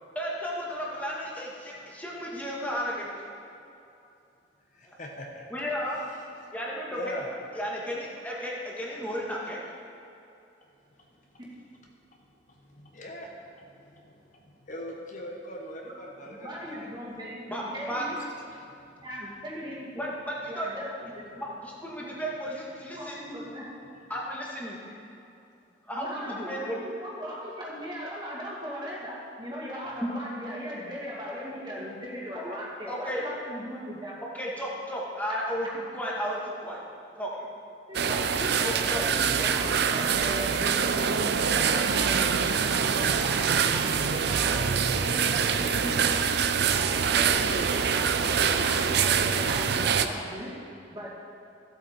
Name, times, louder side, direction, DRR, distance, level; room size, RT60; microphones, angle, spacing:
voice 1, 0.1-3.1 4.8-4.9 5.5-6.0 6.5-7.1 7.5-9.6 17.5-18.1 19.9-20.7 21.4-23.2 24.1-24.8 25.9-26.9 30.0-30.1 32.3-32.6 32.9-33.2 34.3-36.8 37.2-37.3 38.6-39.0, equal, 10° left, -4 dB, 1.7 m, -33 dB
voice 2, 4.7-5.4 6.9-7.3 12.5-16.9 18.5-19.1, equal, 45° left, -1 dB, 1.2 m, -42 dB
voice 3, 16.3-17.4 17.7-18.2 19.0-19.9 20.5-21.2 23.0-23.7 24.8-24.9 26.0-34.2 35.3-35.7 37.9-46.1 46.7-51.1, equal, 25° right, -5 dB, 2.2 m, -38 dB
sound 1, 37.9-50.1, right 6 dB, 60° right, 0.5 m, -25 dB
14.5 x 7.9 x 4.4 m, 2.7 s
head